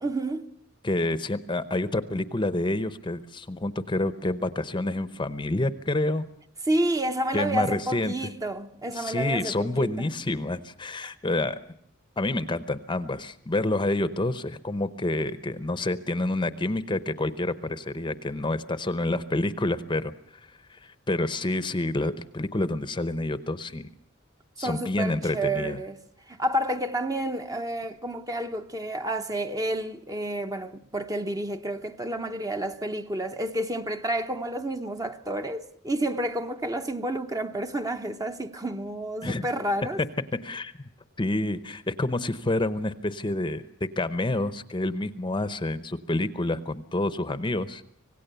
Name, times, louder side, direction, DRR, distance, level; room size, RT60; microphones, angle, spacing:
voice 1, 0.0-0.5 6.6-9.9 24.6-26.0 26.3-40.0, right 1 dB, 20° right, 0.9 m, -30 dB
voice 2, 0.8-6.2 7.3-8.1 8.9-11.6 12.2-20.1 20.7-23.9 24.6-25.8 39.2-39.5 40.4-40.7 41.2-47.8, left 2 dB, 25° left, 0.8 m, -28 dB
25.5 x 18.0 x 6.8 m
head